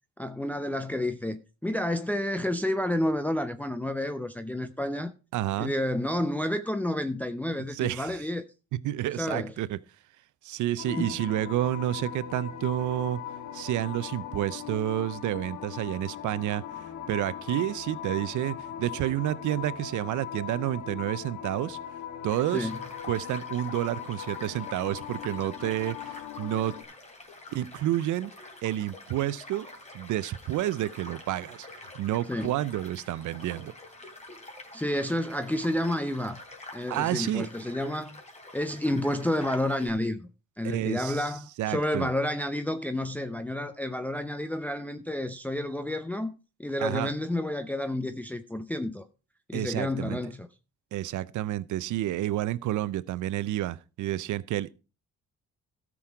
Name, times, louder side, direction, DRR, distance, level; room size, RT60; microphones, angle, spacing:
voice 1, 0.2-5.1 5.6-8.4 9.2-9.5 11.0-11.1 22.5-22.8 32.3-32.5 34.7-36.4 36.7-38.2 38.5-40.3 40.6-46.3 46.6-49.0 49.5-50.5, left 1 dB, 5° left, 0.7 m, -30 dB
voice 2, 5.3-5.7 7.7-8.2 8.7-9.8 10.4-13.2 13.5-21.8 22.2-22.7 23.1-26.7 27.5-28.3 28.6-29.7 29.9-33.7 36.9-37.5 40.6-41.3 41.6-42.1 46.8-47.1 49.5-50.2 50.9-54.7, right 13 dB, 80° right, 0.7 m, -30 dB
sound 1, 10.8-26.8, left 10 dB, 80° left, 1.5 m, -39 dB
Child speech kid speaking / Stream / Car passing by, 22.3-39.9, left 2 dB, 20° left, 2.9 m, -47 dB
13.0 x 6.3 x 4.6 m
cardioid pair, 90°, 30 cm